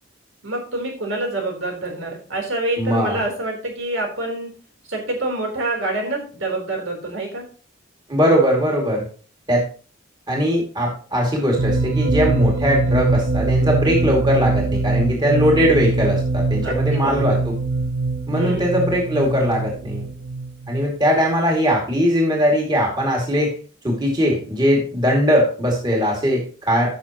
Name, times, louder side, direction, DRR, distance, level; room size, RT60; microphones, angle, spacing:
voice 1, 0.4-4.5 4.9-7.4 16.6-17.4 18.3-18.7, right 2 dB, 75° right, 1 dB, 3.8 m, -26 dB
voice 2, 2.8-3.2 8.1-9.0 9.5-9.6 10.3-17.5 18.3-20.1 20.7-23.5 23.8-26.9, equal, 20° right, -1 dB, 2.5 m, -20 dB
sound 1, 11.6-21.2, right 3 dB, 60° right, 0.6 m, -22 dB
15.5 x 6.4 x 3.0 m, 0.40 s
head